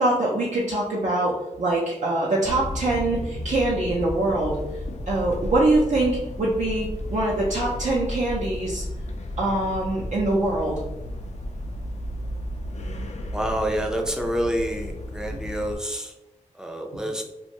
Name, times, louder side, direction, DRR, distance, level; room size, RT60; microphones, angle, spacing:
voice 1, 0.0-4.6 5.1-8.8 9.4-10.8 15.3-15.4, right 2 dB, 65° right, -5 dB, 0.5 m, -24 dB
sound 1, 2.4-15.8, left 1 dB, 60° left, 0.4 m, -33 dB
voice 2, 13.3-16.1 16.5-17.2, equal, 5° right, 2 dB, 0.4 m, -28 dB
2.5 x 2.2 x 2.8 m, 0.92 s
wide cardioid pair, 90°, 13 cm